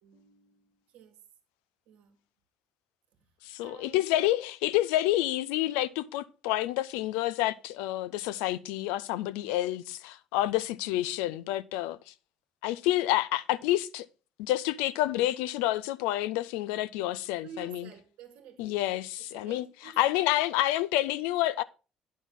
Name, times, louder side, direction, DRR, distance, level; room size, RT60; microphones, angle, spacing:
voice 1, 0.0-1.2 1.9-2.2 3.6-4.4 17.4-19.0 19.3-20.0, right 6 dB, 75° right, 1.6 m, -50 dB
voice 2, 3.4-12.0 12.6-14.1 14.4-17.9 18.6-19.6 20.0-21.6, left 15 dB, 80° left, 0.4 m, -28 dB
9.3 x 6.2 x 3.7 m
hypercardioid pair, 55°, 3 cm